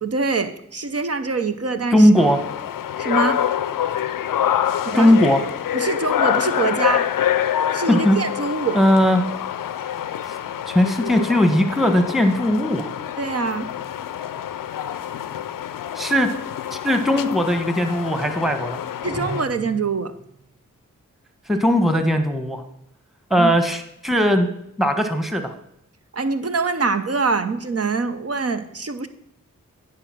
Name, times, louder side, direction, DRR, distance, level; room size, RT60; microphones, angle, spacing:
voice 1, 0.0-2.1 3.0-3.4 4.8-5.2 5.7-7.1 7.7-8.8 13.2-13.7 19.0-20.1 23.4-23.5 26.1-29.1, right 4 dB, 50° right, 9 dB, 0.8 m, -24 dB
voice 2, 1.9-2.4 4.9-5.4 7.7-8.2 8.7-9.3 10.7-12.9 15.9-16.3 16.7-18.8 21.5-22.6 23.3-24.5 24.8-25.5, equal, ahead, 7 dB, 1.4 m, -18 dB
sound 1, 2.2-19.4, left 10 dB, 80° left, 0.5 m, -26 dB
sound 2, 19.0-20.5, right 2 dB, 25° right, 3.3 m, -35 dB
9.8 x 4.9 x 6.1 m, 0.77 s
cardioid pair, 40°, 33 cm